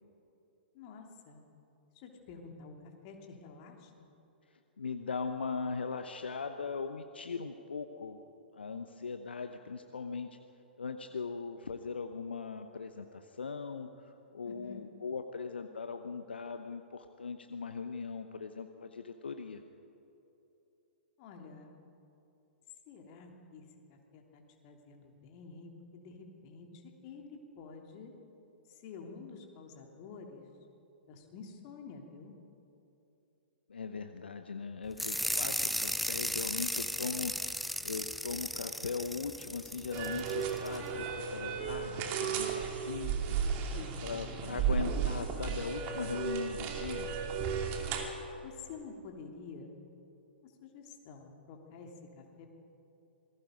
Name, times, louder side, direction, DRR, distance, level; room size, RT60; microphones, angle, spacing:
voice 1, 0.7-1.4 1.9-2.7 3.0-4.1 14.4-14.8 21.2-21.8 22.9-23.6 23.9-28.1 28.7-30.5 31.1-32.3 43.7-44.6 48.4-49.7 50.4-52.5, left 5 dB, 35° left, 2 dB, 3.1 m, -49 dB
voice 2, 4.5-8.2 8.5-10.3 10.8-19.6 33.7-43.4 44.0-47.1, left 5 dB, 70° left, 7 dB, 1.0 m, -39 dB
sound 1, 35.0-40.8, equal, ahead, 0.5 m, -35 dB
sound 2, 39.9-48.1, right 6 dB, 30° right, 2.7 m, -34 dB
27.0 x 20.0 x 5.2 m, 2.9 s
figure-of-eight pair, 115°, 6 cm